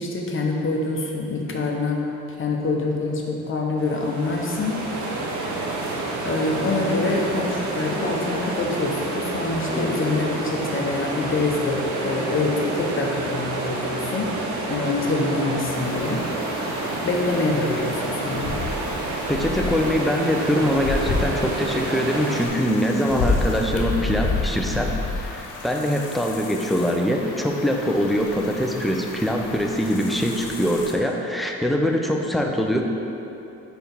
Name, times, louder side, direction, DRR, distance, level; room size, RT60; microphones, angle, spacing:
voice 1, 0.0-2.0 2.4-4.9 6.2-14.4 14.7-16.3 17.0-18.6, left 3 dB, 40° left, -1 dB, 0.9 m, -25 dB
sound 1, 3.8-22.5, right 2 dB, 75° right, 0.9 m, -29 dB
sound 2, 15.6-30.9, left 3 dB, 90° left, 0.8 m, -31 dB
voice 2, 19.3-32.8, equal, ahead, 1 dB, 0.5 m, -23 dB
4.5 x 4.4 x 5.3 m, 2.9 s
cardioid pair, 90°, 30 cm